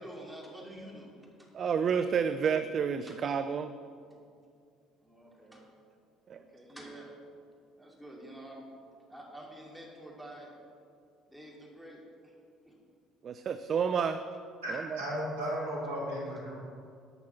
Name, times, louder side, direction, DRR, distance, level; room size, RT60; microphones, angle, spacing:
voice 1, 0.0-1.5 3.1-3.2 5.0-5.7 6.3-7.1 7.8-8.7 9.1-10.5 11.3-12.3 12.7-12.8 14.7-14.8, right 1 dB, 5° right, -2 dB, 2.6 m, -48 dB
voice 2, 1.5-3.7 6.3-6.4 13.2-14.2 14.7-15.0, right 7 dB, 45° right, 10 dB, 0.4 m, -30 dB
voice 3, 14.6-16.5, equal, 85° right, -6 dB, 2.9 m, -35 dB
11.5 x 6.1 x 5.8 m, 2.3 s
hypercardioid pair, 55°, 0 cm